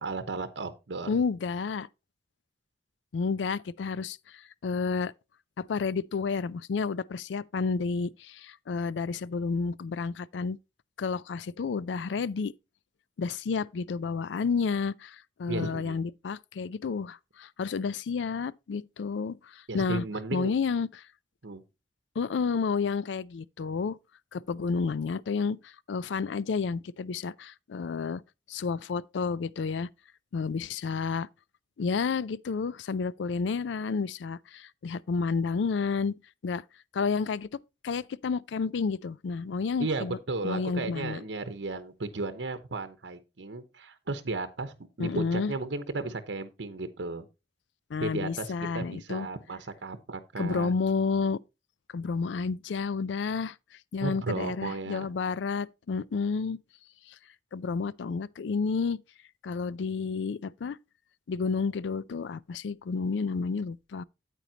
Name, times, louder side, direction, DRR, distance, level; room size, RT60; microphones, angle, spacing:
voice 1, 0.0-1.1 15.5-16.0 19.7-20.5 21.4-21.6 39.8-47.3 48.0-50.7 54.0-55.1, right 3 dB, 90° right, 0.9 m, -34 dB
voice 2, 1.1-1.9 3.1-5.1 5.6-10.6 11.0-12.5 13.2-20.0 20.3-21.0 22.2-24.0 24.3-28.2 28.5-29.9 30.3-31.3 31.8-36.1 36.4-36.6 36.9-37.5 37.8-40.2 40.4-41.2 45.0-45.5 47.9-49.3 50.4-51.4 51.9-53.6 53.9-56.6 57.1-57.2 57.5-59.0 59.4-60.8 61.3-64.0, left 5 dB, 85° left, 0.4 m, -30 dB
9.2 x 8.4 x 2.8 m
head